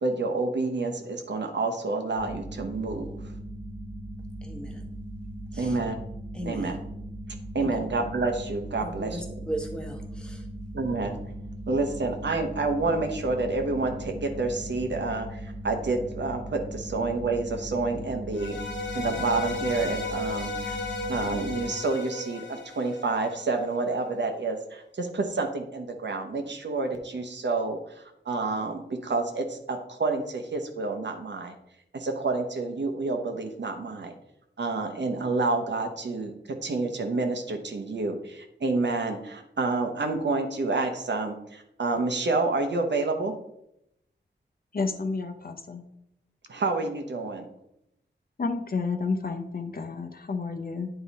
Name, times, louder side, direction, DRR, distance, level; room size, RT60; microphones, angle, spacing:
voice 1, 0.0-3.1 5.6-6.0 6.4-6.8 7.5-9.2 10.7-11.2 11.7-18.6 18.9-20.8 21.1-31.6 31.9-34.1 34.6-43.3 46.5-47.5, right 3 dB, 65° right, 5 dB, 0.9 m, -29 dB
sound 1, 2.2-21.7, right 1 dB, 30° left, 1.3 m, -39 dB
voice 2, 4.4-4.8 5.5-5.8 6.3-6.7 7.6-7.8 8.8-10.5, right 1 dB, 5° left, 2 dB, 1.2 m, -37 dB
sound 2, 18.3-23.6, left 3 dB, 75° left, 1.4 m, -35 dB
voice 3, 44.7-45.8 48.4-50.9, left 4 dB, 50° left, 5 dB, 0.7 m, -30 dB
9.0 x 3.8 x 4.1 m, 0.80 s
wide cardioid pair, 105°, 19 cm